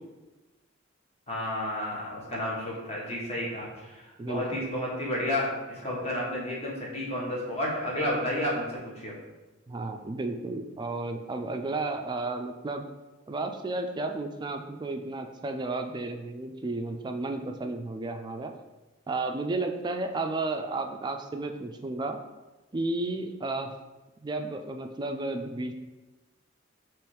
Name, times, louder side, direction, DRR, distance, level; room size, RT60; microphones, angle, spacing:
voice 1, 1.3-9.2, left 1 dB, 35° left, -4 dB, 1.1 m, -31 dB
voice 2, 4.2-4.6 9.7-12.9 13.3-18.5 19.1-22.2 22.7-23.7 24.2-25.7, right 2 dB, 25° right, 5 dB, 0.3 m, -33 dB
3.4 x 3.1 x 4.5 m, 1.1 s
head